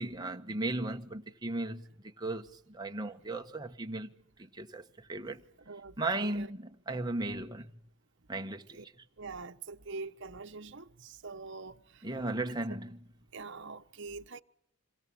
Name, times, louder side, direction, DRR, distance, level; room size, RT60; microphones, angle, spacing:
voice 1, 0.0-1.9 2.2-4.1 4.4-4.8 5.1-5.4 6.0-7.7 8.3-8.6 12.0-13.0, right 2 dB, 20° right, 1.3 m, -36 dB
voice 2, 5.7-6.5 8.7-8.8 9.2-12.0 13.3-14.4, right 4 dB, 55° right, 1.2 m, -44 dB
27.5 x 23.5 x 7.1 m
head